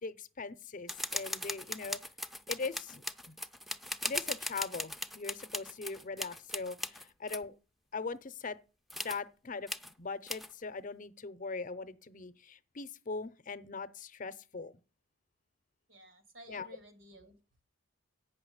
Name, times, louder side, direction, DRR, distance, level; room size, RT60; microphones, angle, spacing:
voice 1, 0.0-2.0 2.5-3.4 4.0-7.6 7.9-8.6 9.0-14.7 16.5-16.7, left 4 dB, 40° left, 0.7 m, -41 dB
sound 1, 0.9-7.4 8.9-9.2 9.7-9.9 10.3-10.5, left 1 dB, ahead, 0.5 m, -39 dB
voice 2, 15.9-17.4, right 1 dB, 85° right, 2.6 m, -54 dB
8.8 x 6.0 x 7.9 m
head